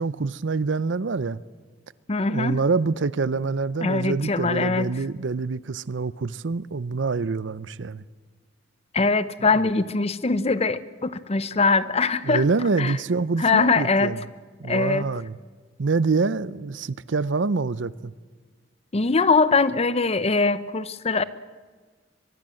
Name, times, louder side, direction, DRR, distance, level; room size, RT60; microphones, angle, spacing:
voice 1, 0.0-1.4 2.3-8.0 12.2-14.2 14.6-15.4 15.8-18.1, right 4 dB, 80° right, 0.6 m, -26 dB
voice 2, 2.1-2.6 3.8-4.9 8.9-12.4 12.8-13.0 13.4-14.1 14.7-15.0 18.9-21.2, left 4 dB, 35° left, 0.7 m, -22 dB
23.5 x 21.5 x 7.7 m
head